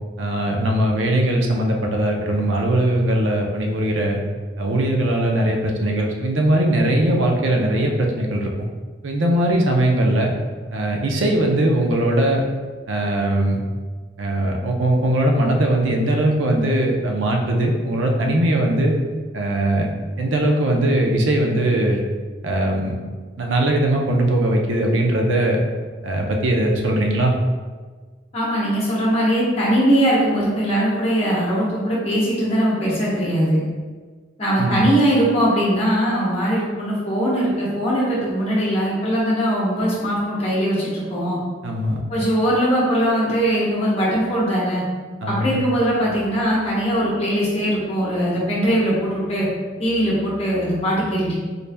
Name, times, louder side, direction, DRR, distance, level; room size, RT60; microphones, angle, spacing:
voice 1, 0.2-4.2 4.6-8.5 9.0-10.3 10.7-12.4 12.9-13.6 14.2-18.9 19.3-19.9 20.2-22.0 22.4-22.9 23.4-25.6 26.0-27.3 34.6-34.8 41.6-42.0 45.2-45.6, right 1 dB, 90° right, 1 dB, 0.6 m, -20 dB
voice 2, 28.3-33.6 34.4-41.4 42.1-44.8 45.2-49.5 49.8-51.4, equal, 35° left, -7 dB, 1.0 m, -20 dB
4.0 x 3.3 x 2.2 m, 1.4 s
head